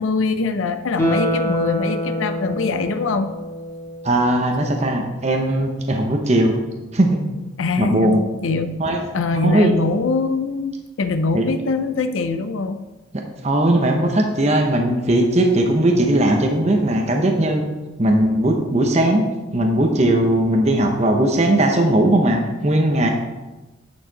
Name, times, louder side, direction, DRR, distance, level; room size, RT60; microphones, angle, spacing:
voice 1, 0.0-3.3 7.6-8.8 9.1-12.9, left 3 dB, 80° left, 9 dB, 0.5 m, -23 dB
Guitar, 1.0-4.2 4.6-4.7, equal, 15° left, 1.8 m, -25 dB
voice 2, 4.0-6.5 6.9-7.2 7.8-8.2 8.8-9.0 9.3-9.7 11.3-11.4 13.4-17.6 18.0-19.3 19.5-23.1, right 1 dB, 35° right, 2 dB, 0.8 m, -18 dB
9.1 x 6.6 x 4.0 m, 1.1 s
head